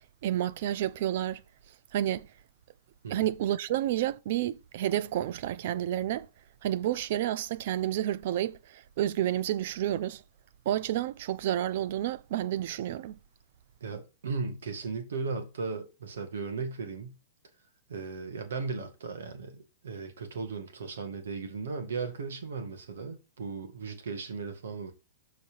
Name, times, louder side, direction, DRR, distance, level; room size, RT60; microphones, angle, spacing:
voice 1, 0.2-1.4 1.9-2.3 3.1-6.3 6.6-10.2 10.7-13.2, right 12 dB, 55° right, 0.5 m, -30 dB
voice 2, 13.8-17.1 17.9-24.9, right 4 dB, 80° right, 2.0 m, -36 dB
6.6 x 4.1 x 4.7 m
hypercardioid pair, 130°, 0 cm